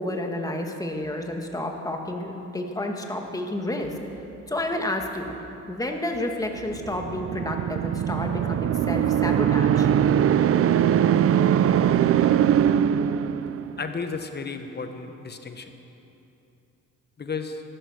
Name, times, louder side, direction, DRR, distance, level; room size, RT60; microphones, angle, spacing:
voice 1, 0.0-3.9 4.5-5.3 5.7-9.9, left 1 dB, 10° left, 2 dB, 1.9 m, -30 dB
sound 1, 6.9-13.8, right 9 dB, 50° right, 0.5 m, -21 dB
voice 2, 13.8-15.7 17.2-17.6, left 4 dB, 35° left, 7 dB, 1.1 m, -33 dB
15.0 x 12.5 x 6.6 m, 2.9 s
cardioid pair, 90°, 30 cm